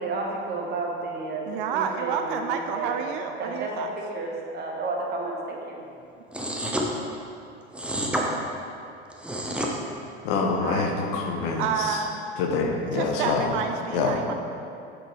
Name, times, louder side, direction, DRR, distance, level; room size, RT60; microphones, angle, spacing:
voice 1, 0.0-1.5 1.7-5.8, right 3 dB, 30° right, -2 dB, 1.5 m, -32 dB
voice 2, 1.5-3.9 10.6-10.9 11.3-12.2 12.9-14.3, right 7 dB, 55° right, 5 dB, 0.5 m, -29 dB
sound 1, 6.3-6.9 7.7-8.3 9.1-9.7, right 1 dB, 5° right, 0.8 m, -28 dB
voice 3, 10.2-12.0 12.4-13.5 13.9-14.2, left 4 dB, 55° left, 2 dB, 1.0 m, -26 dB
8.8 x 6.7 x 3.1 m, 2.6 s
figure-of-eight pair, 70°, 33 cm